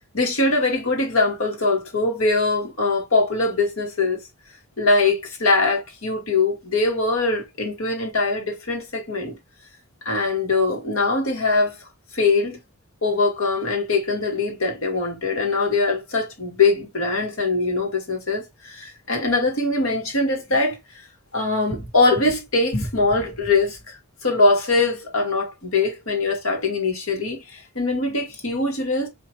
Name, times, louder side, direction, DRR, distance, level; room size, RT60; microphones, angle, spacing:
voice 1, 0.1-4.2 4.8-9.3 10.1-11.7 12.1-12.6 13.0-20.8 21.3-29.1, left 3 dB, 70° left, 1.7 m, -22 dB
4.7 x 2.8 x 3.0 m
head